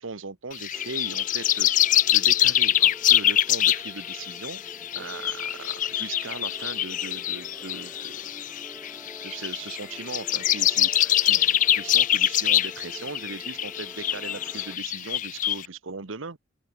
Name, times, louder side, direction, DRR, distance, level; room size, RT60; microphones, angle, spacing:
voice 1, 0.0-4.6 4.9-8.2 9.2-16.4, right 4 dB, 75° right, 1.2 m, -39 dB
sound 1, 0.5-15.7, left 12 dB, 40° left, 0.3 m, -24 dB
sound 2, 0.7-14.8, right 1 dB, 10° right, 1.2 m, -48 dB
open air
head